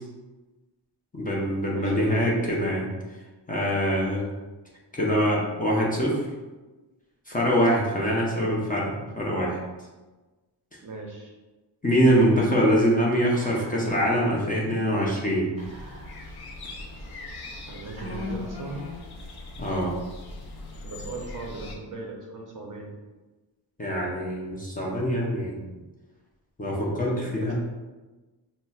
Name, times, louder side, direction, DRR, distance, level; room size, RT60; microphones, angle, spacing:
voice 1, 1.1-2.9 3.5-4.2 4.9-6.2 7.3-9.6 11.8-15.5 19.6-19.9 23.8-25.6 26.6-27.5, equal, 20° left, -4 dB, 0.6 m, -24 dB
voice 2, 1.7-2.3 10.8-11.3 17.7-18.9 20.8-22.9 27.1-27.5, right 3 dB, 45° right, 0 dB, 0.5 m, -38 dB
Whispering, 13.3-14.0 14.3-14.4 15.6-16.4 17.0-17.1 17.9-19.2, left 3 dB, 15° right, 1.2 m, -39 dB
sound 1, 15.6-21.8, left 2 dB, 55° left, 0.6 m, -41 dB
5.5 x 2.1 x 2.3 m, 1.2 s
wide cardioid pair, 140°, 46 cm